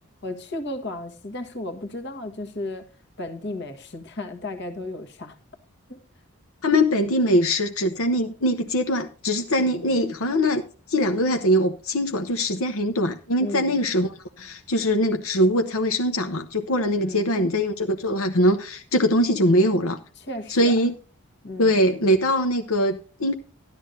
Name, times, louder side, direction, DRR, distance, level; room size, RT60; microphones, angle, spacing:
voice 1, 0.2-2.9 3.2-5.4 5.9-6.0 9.6-10.0 13.4-13.8 16.9-17.4 20.2-20.8 21.4-21.8, left 2 dB, 50° left, 1.5 m, -34 dB
voice 2, 6.6-10.6 10.9-14.1 14.4-20.0 20.5-20.9 21.6-23.3, equal, 80° left, 1.0 m, -22 dB
13.5 x 12.0 x 2.7 m
head